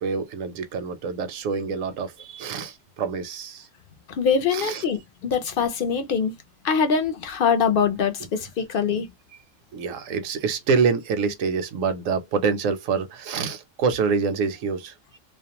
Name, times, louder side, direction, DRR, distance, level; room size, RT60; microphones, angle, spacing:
voice 1, 0.0-3.7 4.5-4.8 9.7-15.2, right 5 dB, 80° right, 1.0 m, -26 dB
voice 2, 4.1-6.3 6.6-9.1, left 6 dB, 60° left, 0.6 m, -23 dB
2.5 x 2.1 x 2.8 m
omnidirectional pair, 1.4 m